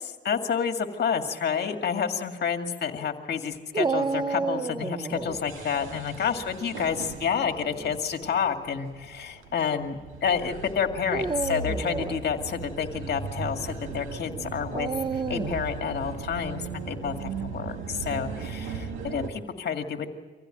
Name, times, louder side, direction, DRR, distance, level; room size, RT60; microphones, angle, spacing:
voice 1, 0.0-20.1, left 7 dB, 55° left, 5 dB, 2.2 m, -29 dB
Dog, 3.7-5.4 7.5-8.0 8.8-8.9 11.0-12.2 14.7-15.7, right 4 dB, 25° right, 0.7 m, -30 dB
sound 1, 5.1-19.3, right 5 dB, 90° right, 2.2 m, -38 dB
25.0 x 16.0 x 9.1 m, 1.4 s
cardioid pair, 90°, 20 cm